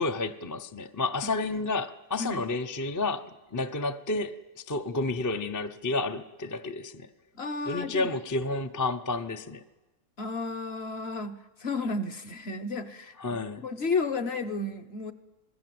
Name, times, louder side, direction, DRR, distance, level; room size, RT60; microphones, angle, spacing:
voice 1, 0.0-7.1 7.7-9.6 13.2-13.6, left 3 dB, 20° left, 0.5 m, -31 dB
voice 2, 7.3-8.1 10.2-13.1 13.6-15.1, left 3 dB, 45° left, 1.3 m, -32 dB
27.0 x 20.5 x 7.8 m
omnidirectional pair, 1.6 m